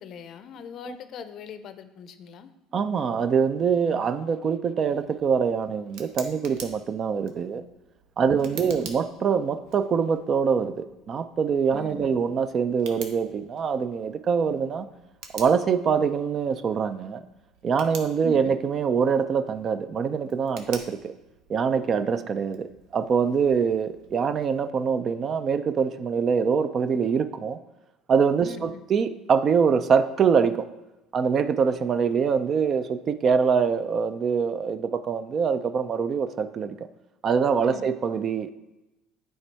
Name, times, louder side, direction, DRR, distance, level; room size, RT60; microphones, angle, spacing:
voice 1, 0.0-2.5 8.3-8.7 11.7-12.1 18.3-18.5 28.4-28.8 37.6-37.9, left 7 dB, 50° left, 0.5 m, -42 dB
voice 2, 2.7-7.6 8.2-14.9 15.3-17.2 17.6-21.1 21.5-27.6 28.1-30.7 31.1-36.8 37.2-38.5, right 6 dB, 40° right, 0.4 m, -24 dB
Tick, 4.9-24.6, right 5 dB, 70° right, 0.8 m, -48 dB
8.8 x 3.3 x 4.6 m
supercardioid pair, 115°, 0 cm